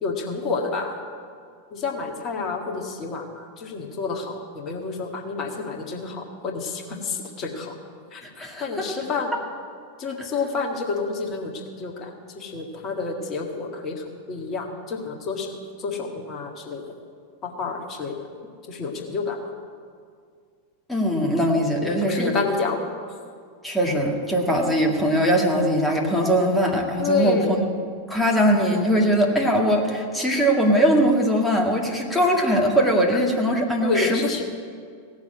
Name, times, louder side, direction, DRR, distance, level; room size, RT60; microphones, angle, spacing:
voice 1, 0.0-1.0 1.7-7.7 8.1-9.3 10.0-11.5 11.8-12.1 12.4-15.5 15.8-16.8 17.4-18.2 18.7-19.4 21.8-22.8 27.0-27.5 33.8-34.4, left 4 dB, 30° left, 2 dB, 1.9 m, -29 dB
voice 2, 8.2-8.9 9.3-9.4 10.2-10.3 20.9-22.3 23.6-27.7 28.1-34.2, equal, 5° left, -1 dB, 2.2 m, -21 dB
17.0 x 7.3 x 8.7 m, 2.1 s
figure-of-eight pair, 90°, 0 cm